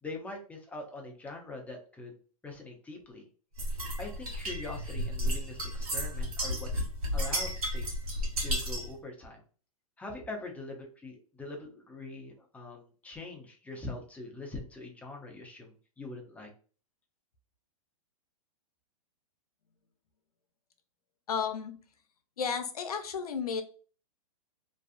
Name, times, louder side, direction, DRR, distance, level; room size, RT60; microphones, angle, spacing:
voice 1, 0.0-2.1 2.4-3.3 4.0-6.8 7.1-9.4 10.0-16.5, left 2 dB, 10° left, 1 dB, 0.6 m, -43 dB
sound 1, 3.6-8.9, equal, 75° right, 1.1 m, -33 dB
voice 2, 21.3-21.7 22.4-23.6, left 6 dB, 85° left, 7 dB, 0.6 m, -32 dB
2.6 x 2.3 x 2.4 m, 0.39 s
hypercardioid pair, 125°, 19 cm